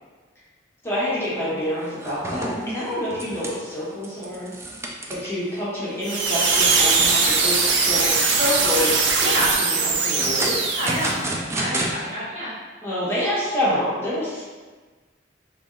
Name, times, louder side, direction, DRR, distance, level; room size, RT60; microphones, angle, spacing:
voice 1, 0.8-4.5 5.1-7.6 7.9-8.9 9.2-10.5 12.8-14.4, left 1 dB, 15° left, -10 dB, 1.0 m, -27 dB
sound 1, 1.2-1.4 1.7-5.5 5.9-6.0 6.5-6.6 7.1-7.5 8.0-8.7 9.7-11.9, right 1 dB, 15° right, 0.3 m, -31 dB
sound 2, 6.0-11.2, right 4 dB, 80° right, 0.5 m, -21 dB
voice 2, 9.2-9.5 10.8-12.5, equal, 45° right, -8 dB, 1.0 m, -28 dB
3.1 x 2.6 x 3.6 m, 1.4 s
head